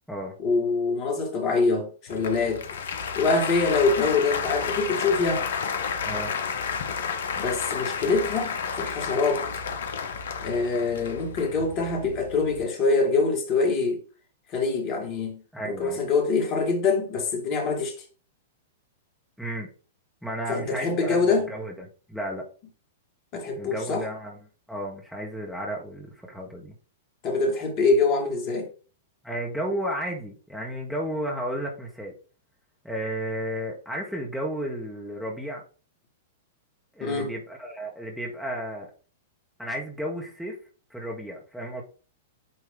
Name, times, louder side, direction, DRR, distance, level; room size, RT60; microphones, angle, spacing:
voice 1, 0.4-2.6 3.2-5.4 7.3-9.4 10.4-14.0 14.5-17.9 20.5-21.5 23.3-24.0 27.2-28.7 37.0-37.3, left 4 dB, 40° left, 2.1 m, -24 dB
Applause, 2.1-12.7, left 6 dB, 65° left, 0.7 m, -31 dB
voice 2, 15.5-16.0 19.4-19.7 20.2-22.5 23.5-24.4 24.7-26.7 29.2-32.1 32.8-35.6 36.9-38.9 39.6-40.6 40.9-41.8, right 1 dB, ahead, 1.5 m, -33 dB
8.8 x 3.0 x 3.8 m
figure-of-eight pair, 100°, 0 cm